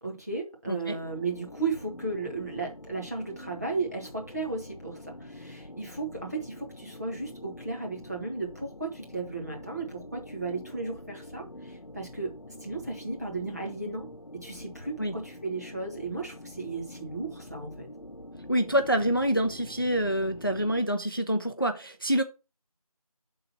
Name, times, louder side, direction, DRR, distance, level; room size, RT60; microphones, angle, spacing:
voice 1, 0.0-12.3 12.6-14.1 14.4-17.9, right 3 dB, 25° right, 1.5 m, -35 dB
sound 1, 1.0-20.8, left 1 dB, 70° left, 1.0 m, -45 dB
voice 2, 18.5-22.2, equal, 35° left, 0.5 m, -26 dB
6.5 x 3.9 x 5.8 m
figure-of-eight pair, 180°, 19 cm